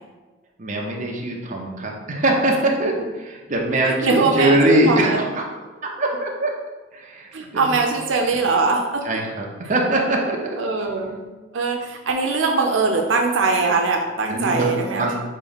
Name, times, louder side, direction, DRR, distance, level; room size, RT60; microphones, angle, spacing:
voice 1, 0.6-5.4 6.0-6.6 6.9-7.7 9.0-10.5 14.3-15.2, right 1 dB, 40° right, -1 dB, 0.7 m, -22 dB
voice 2, 3.8-5.2 7.3-9.0 10.6-11.3 11.5-15.2, right 3 dB, 90° right, 2 dB, 0.5 m, -21 dB
4.0 x 3.2 x 3.9 m, 1.2 s
head